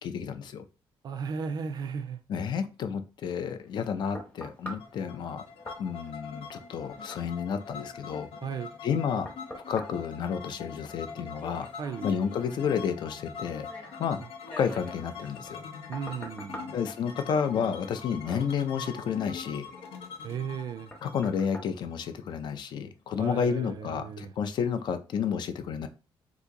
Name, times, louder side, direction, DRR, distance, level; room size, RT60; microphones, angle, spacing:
voice 1, 0.0-0.6 2.3-5.4 5.8-8.3 8.8-9.3 9.7-11.7 12.0-14.2 14.6-15.6 16.7-19.7 21.0-25.9, left 7 dB, 50° left, 0.4 m, -31 dB
voice 2, 1.0-2.2 8.4-8.7 11.8-12.1 15.9-16.7 20.2-20.9 23.2-24.3, right 6 dB, 45° right, 0.4 m, -35 dB
sound 1, 3.5-22.7 23.2-23.4, equal, 15° left, 0.8 m, -48 dB
sound 2, 4.8-22.5, left 6 dB, 85° left, 0.7 m, -43 dB
2.8 x 2.5 x 3.6 m
cardioid pair, 165°, 9 cm